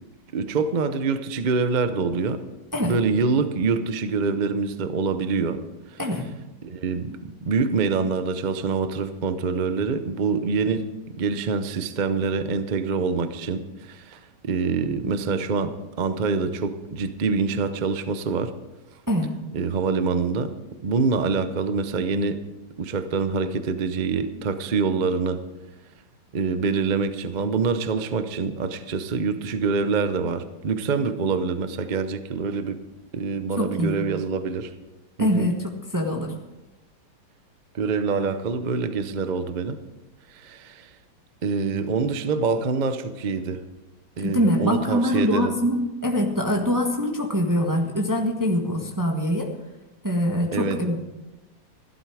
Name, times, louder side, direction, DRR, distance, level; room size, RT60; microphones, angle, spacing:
voice 1, 0.3-2.4 2.8-5.6 5.9-6.0 6.6-10.9 11.2-18.5 19.5-20.5 20.8-22.4 22.8-25.4 26.3-32.8 33.1-34.7 35.2-35.5 37.7-39.8 40.3-40.9 41.4-43.6 44.2-45.5 50.5-50.8, right 5 dB, 70° right, 10 dB, 0.4 m, -25 dB
voice 2, 33.6-34.0 35.2-36.3 44.2-49.5 50.0-51.0, equal, 10° right, 0 dB, 1.2 m, -24 dB
15.0 x 12.5 x 4.8 m, 1.0 s
omnidirectional pair, 2.1 m